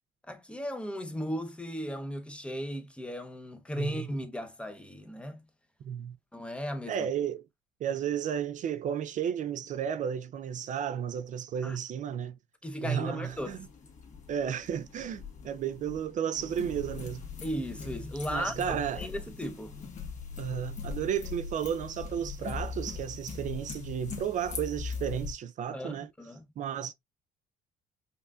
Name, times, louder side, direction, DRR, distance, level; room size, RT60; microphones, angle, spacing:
voice 1, 0.3-5.4 6.3-7.0 11.6-11.8 12.6-13.6 17.4-19.8 25.7-26.4, equal, 5° left, 0.7 m, -36 dB
voice 2, 3.8-4.1 5.8-6.2 6.9-7.4 7.8-12.4 12.8-13.6 14.3-17.2 18.3-19.1 20.4-26.1 26.6-26.9, right 8 dB, 50° right, 0.4 m, -33 dB
sound 1, 13.3-25.3, left 4 dB, 45° left, 1.4 m, -41 dB
5.5 x 2.5 x 2.3 m
cardioid pair, 110°, 17 cm